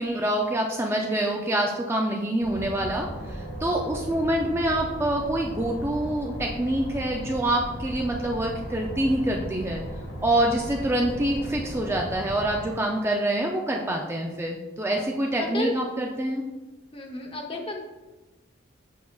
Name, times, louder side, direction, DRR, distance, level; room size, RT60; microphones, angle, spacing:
voice 1, 0.0-9.8 10.2-16.4, right 1 dB, 15° right, 0 dB, 0.4 m, -26 dB
sound 1, 2.4-12.6, equal, 80° left, 1.4 m, -36 dB
voice 2, 15.4-15.7 16.9-17.8, left 1 dB, 25° left, 2 dB, 0.8 m, -32 dB
7.2 x 5.7 x 2.3 m, 1.1 s
head